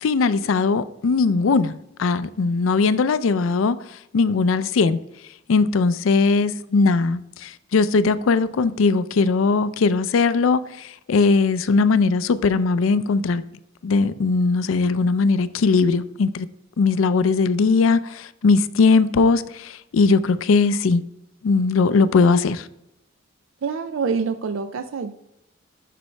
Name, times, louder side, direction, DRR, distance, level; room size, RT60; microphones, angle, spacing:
voice 1, 0.0-3.8 4.1-5.0 5.5-13.4 13.8-16.5 16.8-21.0 21.4-22.7, left 4 dB, 85° left, 0.4 m, -19 dB
voice 2, 23.6-25.1, right 5 dB, 80° right, 0.4 m, -26 dB
7.5 x 5.3 x 3.2 m
head